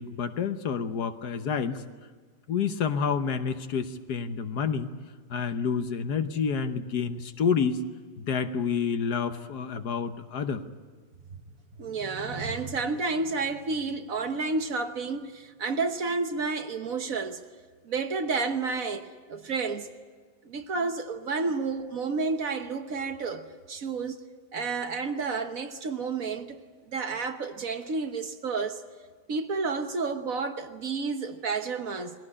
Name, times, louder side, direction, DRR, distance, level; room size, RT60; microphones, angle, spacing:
voice 1, 0.0-1.8 2.5-4.9 5.3-7.9 8.2-10.6, left 6 dB, 65° left, 1.5 m, -29 dB
voice 2, 11.8-17.4 17.8-19.9 20.4-24.2 24.5-26.6 26.9-28.8 29.3-32.1, right 4 dB, 55° right, 1.5 m, -30 dB
21.0 x 17.0 x 9.9 m
omnidirectional pair, 1.9 m